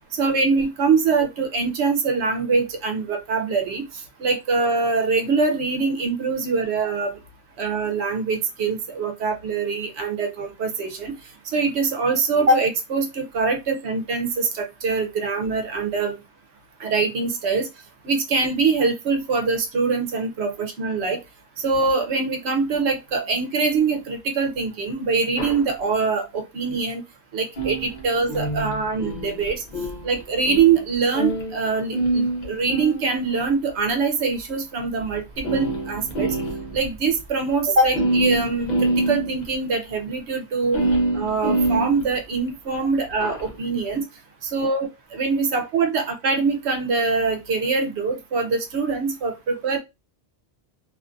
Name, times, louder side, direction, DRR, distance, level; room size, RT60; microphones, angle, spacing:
voice 1, 0.2-3.8 4.2-7.1 7.6-11.1 11.5-16.2 16.8-17.7 18.0-21.2 21.6-27.0 27.3-29.6 30.0-36.3 36.7-40.8 41.1-44.0 44.4-49.8, right 4 dB, 80° right, 4 dB, 0.9 m, -23 dB
sound 1, 25.4-25.7 27.6-31.7 31.9-33.5 34.4-34.5 35.0-35.1 35.4-36.9 37.2-37.3 37.5-37.6 37.9-39.5 40.7-42.5 43.1-43.5, right 2 dB, 50° left, 0.7 m, -25 dB
2.5 x 2.4 x 2.4 m, 0.23 s
omnidirectional pair, 1.1 m